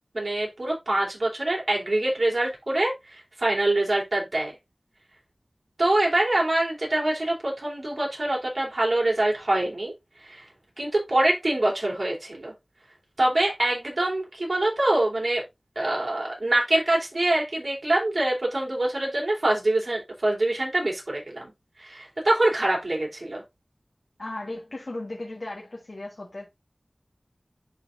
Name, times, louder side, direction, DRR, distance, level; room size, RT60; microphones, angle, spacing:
voice 1, 0.1-4.6 5.8-9.9 10.2-10.5 10.8-12.5 13.2-15.4 15.8-21.5 21.8-23.4, right 1 dB, 60° right, 3.6 m, -25 dB
voice 2, 24.2-26.5, left 2 dB, 65° left, 1.6 m, -36 dB
10.5 x 3.9 x 2.6 m
wide cardioid pair, 45°, 0 cm